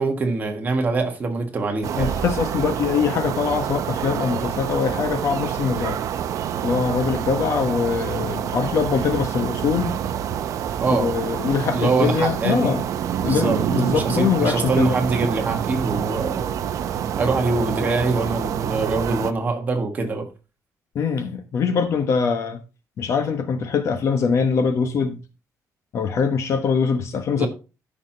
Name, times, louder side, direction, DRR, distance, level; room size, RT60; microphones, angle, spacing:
voice 1, 0.0-2.1 10.8-11.1 11.7-12.8 13.2-13.6 13.9-16.5 17.2-20.3 27.4-27.5, right 3 dB, 25° right, 1.4 m, -24 dB
sound 1, 1.8-19.3, right 9 dB, 55° right, 0.6 m, -27 dB
voice 2, 1.9-6.0 6.6-10.0 10.9-12.8 13.2-15.0 20.9-22.6 23.0-25.2 25.9-27.5, left 6 dB, 50° left, 1.0 m, -23 dB
13.5 x 5.9 x 2.8 m
cardioid pair, 180°, 6 cm